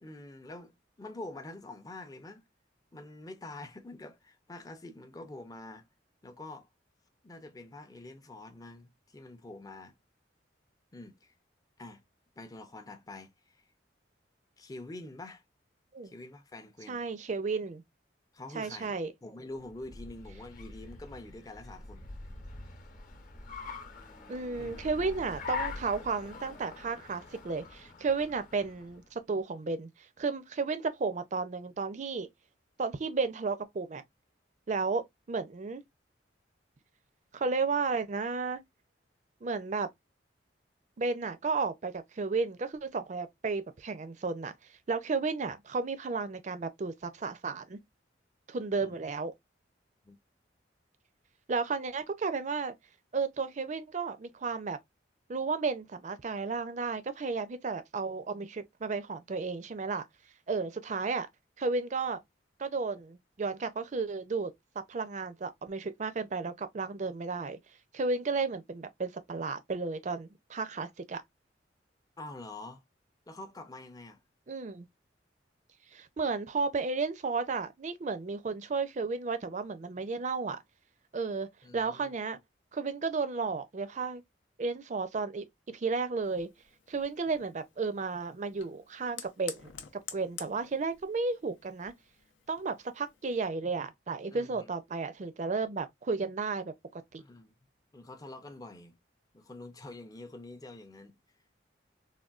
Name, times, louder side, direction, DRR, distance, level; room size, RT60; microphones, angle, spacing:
voice 1, 0.0-2.5 2.9-5.9 6.2-6.7 7.2-9.9 10.9-11.3 11.8-12.0 12.4-13.7 14.6-15.4 16.0-17.0 18.3-18.9 19.2-22.1 24.6-24.9 48.8-48.9 50.0-50.2 72.2-72.8 73.3-74.2 81.6-82.1 94.3-94.7 97.2-97.5 97.9-99.0 99.3-101.1, left 2 dB, 20° left, 0.5 m, -46 dB
voice 2, 16.9-17.8 18.5-19.1 24.3-29.9 30.2-32.3 32.8-34.0 34.7-35.8 37.3-38.6 39.4-39.9 41.0-44.5 44.9-47.8 48.5-49.3 51.5-52.7 53.1-54.8 55.3-60.1 60.5-61.3 61.6-62.2 62.6-67.6 67.9-71.2 74.5-74.9 75.9-80.6 81.1-81.5 81.7-82.4 82.7-84.2 84.6-85.4 85.7-86.5 86.9-91.9 92.5-96.7 97.1-97.2, right 4 dB, 40° right, 0.4 m, -33 dB
Car, 19.6-29.1, left 4 dB, 45° left, 0.8 m, -43 dB
Fire, 86.2-93.5, left 8 dB, 85° left, 0.6 m, -50 dB
3.6 x 2.2 x 2.3 m
head